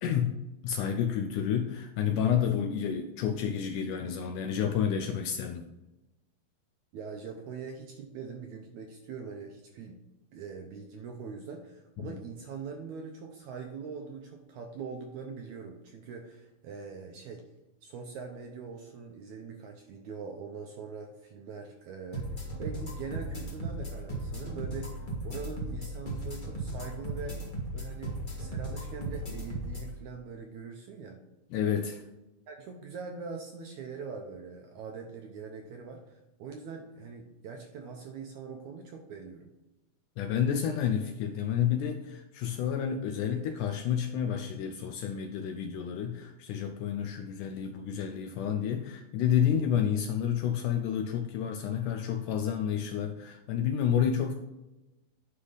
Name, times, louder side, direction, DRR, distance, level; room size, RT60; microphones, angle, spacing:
voice 1, 0.0-5.7 12.0-12.2 31.5-32.0 40.2-54.4, left 8 dB, 80° left, 6 dB, 1.9 m, -30 dB
voice 2, 6.9-10.0 10.3-17.4 17.8-31.2 32.5-39.5, right 5 dB, 75° right, 3 dB, 1.8 m, -42 dB
sound 1, 22.1-29.9, right 1 dB, 45° left, 0.6 m, -36 dB
10.0 x 5.5 x 4.0 m, 1.0 s
omnidirectional pair, 4.1 m